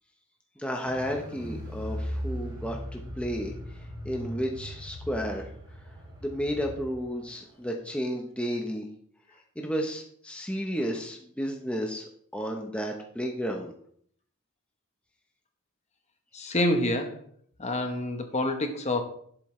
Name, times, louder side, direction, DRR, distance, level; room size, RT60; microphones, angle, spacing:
voice 1, 0.6-3.5 4.0-5.5 6.2-8.9 9.6-13.7, equal, 5° left, 1 dB, 0.9 m, -32 dB
Car, 0.8-7.0 7.3-7.4, equal, 20° right, 2.8 m, -38 dB
voice 2, 16.3-17.2 17.6-19.0, left 1 dB, 30° left, 6 dB, 1.1 m, -27 dB
11.0 x 8.0 x 3.2 m, 0.62 s
head